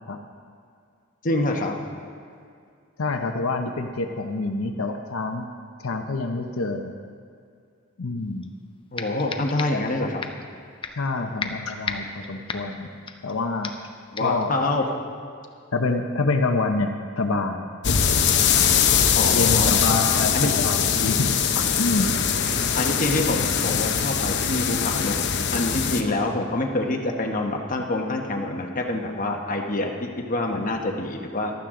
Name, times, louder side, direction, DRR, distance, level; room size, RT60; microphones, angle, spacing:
voice 1, 1.2-1.8 8.9-10.2 14.1-14.9 19.1-20.5 22.7-25.2 25.5-31.5, left 2 dB, 40° left, 1 dB, 1.1 m, -26 dB
voice 2, 3.0-5.5 5.8-6.9 8.0-8.5 9.7-9.8 11.0-12.9 13.2-13.7 14.2-14.5 15.7-17.7 19.3-22.1, left 3 dB, 90° left, 4 dB, 0.8 m, -26 dB
sound 1, 8.4-8.5 9.0-9.9 10.2-10.5 10.8-11.1 11.4-13.3 13.6-13.9 14.2-14.4, left 4 dB, 25° left, 0.6 m, -34 dB
sound 2, 17.8-26.0, left 7 dB, 55° left, 0.8 m, -22 dB
15.0 x 12.0 x 3.8 m, 2.3 s
head